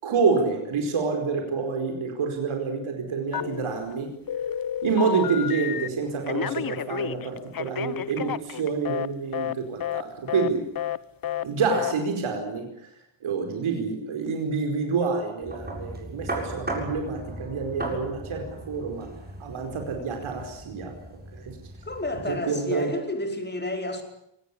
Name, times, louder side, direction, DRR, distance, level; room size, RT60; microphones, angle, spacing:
voice 1, 0.0-4.1 4.8-10.6 11.4-12.6 13.2-19.1 19.4-20.9 21.3-21.6 22.3-22.9, right 5 dB, 75° right, 4 dB, 4.9 m, -27 dB
Telephone, 3.3-3.9 4.3-5.9 6.3-9.1 9.3-9.5 9.8-10.0 10.3-10.5 10.7-11.0 11.2-11.4 11.7-11.9, left 10 dB, 45° left, 0.9 m, -30 dB
sound 1, 15.4-22.3, right 2 dB, 20° right, 7.2 m, -37 dB
voice 2, 21.8-24.0, left 2 dB, 20° left, 5 dB, 4.9 m, -30 dB
24.0 x 19.0 x 9.9 m, 0.77 s
wide cardioid pair, 130°, 49 cm